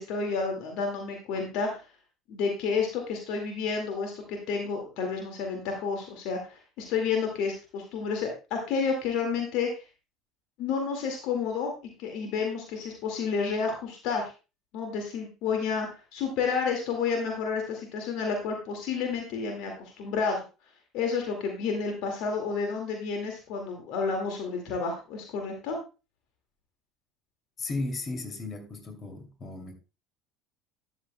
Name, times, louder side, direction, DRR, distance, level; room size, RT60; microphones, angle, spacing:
voice 1, 0.0-1.8 2.3-9.7 10.6-11.7 12.0-14.3 14.7-20.4 20.9-25.8, left 5 dB, 60° left, 2.0 m, -30 dB
voice 2, 27.6-29.8, left 2 dB, 35° left, 2.7 m, -35 dB
12.5 x 9.9 x 2.2 m
figure-of-eight pair, 65°, 0 cm